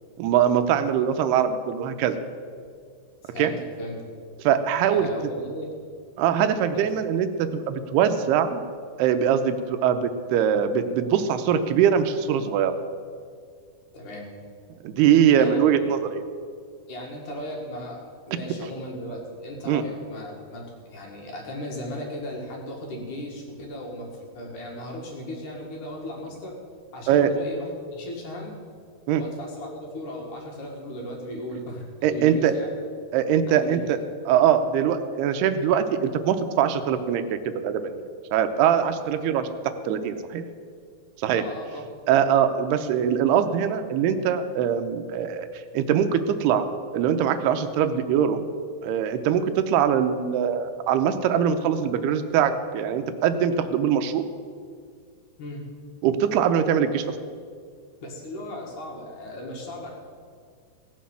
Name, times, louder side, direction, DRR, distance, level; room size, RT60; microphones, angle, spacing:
voice 1, 0.2-2.2 3.4-3.5 4.4-5.1 6.2-8.6 9.0-12.8 14.8-16.2 19.7-19.8 27.1-27.3 29.1-29.2 32.0-32.5 33.1-34.0 34.3-38.0 38.3-39.5 39.9-40.4 41.2-41.4 42.1-46.7 46.9-48.4 48.8-54.2 56.0-57.2, right 8 dB, 90° right, 9 dB, 2.7 m, -22 dB
voice 2, 3.2-4.0 4.9-5.8 6.7-6.9 13.9-14.3 15.3-15.9 16.9-26.6 26.9-28.6 29.2-32.7 33.5-33.8 41.3-41.8 55.4-55.6 58.0-59.9, left 1 dB, 55° left, -1 dB, 3.0 m, -36 dB
16.5 x 7.5 x 7.2 m, 2.1 s
omnidirectional pair, 4.7 m